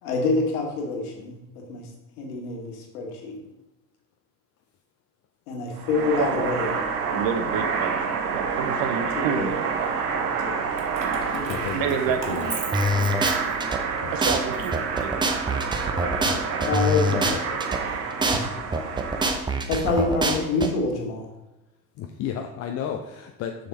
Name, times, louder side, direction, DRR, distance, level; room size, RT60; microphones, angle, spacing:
voice 1, 0.0-1.9 2.2-3.4 5.5-6.8 9.2-9.5 10.4-10.6 11.3-11.6 16.7-17.3 18.2-18.5 19.7-21.3, left 3 dB, 60° left, 1 dB, 1.8 m, -26 dB
sound 1, 5.7-19.4, right 5 dB, 65° right, 1.1 m, -28 dB
voice 2, 7.1-9.9 11.7-12.7 14.1-15.1, right 7 dB, 45° right, 8 dB, 0.8 m, -29 dB
Keys jangling, 10.7-13.9 14.3-15.6, right 3 dB, 85° right, 1.1 m, -37 dB
voice 3, 11.4-12.0 12.3-12.5 14.0-14.1 16.2-16.5 17.1-17.9 22.0-23.7, left 8 dB, 30° left, 4 dB, 0.6 m, -33 dB
sound 2, 12.7-13.8 14.2-14.4 14.7-17.8 18.2-18.4 18.7-20.7, right 1 dB, 10° right, 0.6 m, -24 dB
6.5 x 6.4 x 4.1 m, 0.97 s
figure-of-eight pair, 70°, 50 cm